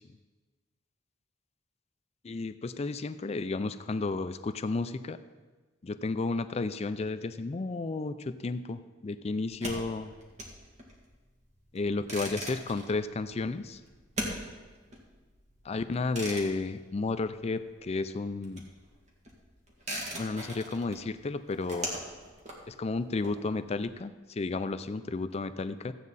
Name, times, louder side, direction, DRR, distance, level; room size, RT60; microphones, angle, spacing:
voice 1, 2.2-5.2 5.8-10.1 11.7-13.8 15.6-18.6 20.1-21.9 22.7-25.9, left 3 dB, 35° left, 11 dB, 0.4 m, -32 dB
sound 1, 9.4-17.8 18.0-23.8, right 1 dB, 40° right, 2.1 m, -41 dB
15.0 x 8.4 x 4.1 m, 1.3 s
head